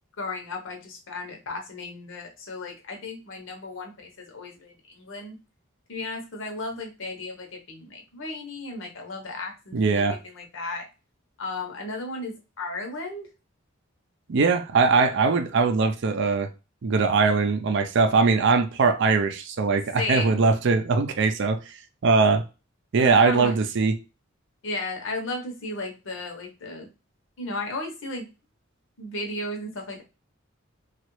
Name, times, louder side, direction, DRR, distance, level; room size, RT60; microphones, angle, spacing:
voice 1, 0.2-5.4 5.9-10.9 11.4-13.3 20.0-20.4 23.0-23.6 24.6-26.9 27.4-28.3 29.0-30.0, left 2 dB, 65° left, 0.9 m, -34 dB
voice 2, 9.7-10.2 14.3-16.5 16.8-21.6 22.0-22.4 22.9-23.9, right 4 dB, 60° right, 0.5 m, -21 dB
3.0 x 2.4 x 3.0 m
head